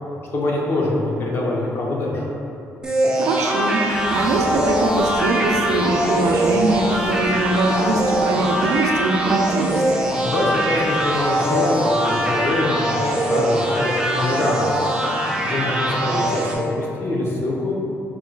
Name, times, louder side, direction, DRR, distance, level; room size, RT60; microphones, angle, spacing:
voice 1, 0.3-2.3 10.2-14.7 15.4-17.7, left 2 dB, 40° left, -3 dB, 0.6 m, -24 dB
sound 1, 2.8-16.5, right 1 dB, 15° right, 0.5 m, -22 dB
voice 2, 3.2-9.8, right 3 dB, 70° right, 1 dB, 0.4 m, -22 dB
sound 2, 3.9-14.5, left 1 dB, 80° left, 1.3 m, -41 dB
3.7 x 2.3 x 4.4 m, 2.8 s
cardioid pair, 145°, 6 cm